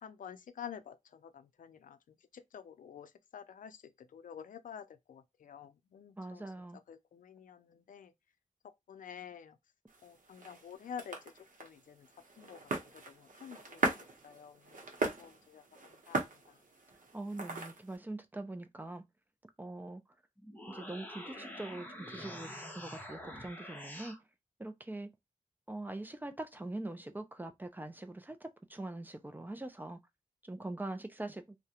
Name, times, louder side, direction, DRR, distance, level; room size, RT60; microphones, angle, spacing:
voice 1, 0.0-2.0 2.5-6.4 6.9-8.1 8.9-9.6 10.0-11.2 11.6-12.1 12.4-14.8 15.2-16.6, left 8 dB, 80° left, 0.4 m, -49 dB
voice 2, 6.2-6.8 17.1-19.0 19.6-20.0 20.7-24.2 24.6-25.1 25.7-30.0 30.4-31.6, right 2 dB, 15° right, 0.4 m, -43 dB
sound 1, 9.9-18.0, right 3 dB, 75° right, 0.7 m, -39 dB
sound 2, 20.4-24.2, left 1 dB, 15° left, 0.7 m, -46 dB
2.3 x 2.1 x 2.8 m
wide cardioid pair, 75°, 14 cm